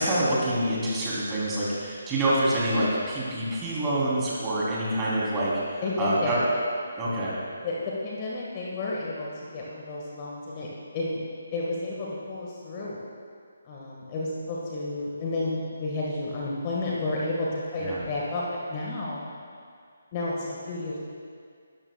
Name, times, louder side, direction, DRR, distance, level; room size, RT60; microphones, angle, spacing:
voice 1, 0.0-6.4 7.0-7.3 17.8-18.0, right 1 dB, 15° right, -7 dB, 3.4 m, -26 dB
voice 2, 5.8-6.5 7.6-11.2 11.5-13.0 13.6-19.3 20.1-21.0, left 2 dB, 25° left, -5 dB, 1.7 m, -31 dB
22.0 x 12.5 x 2.4 m, 2.2 s
figure-of-eight pair, 145°, 0 cm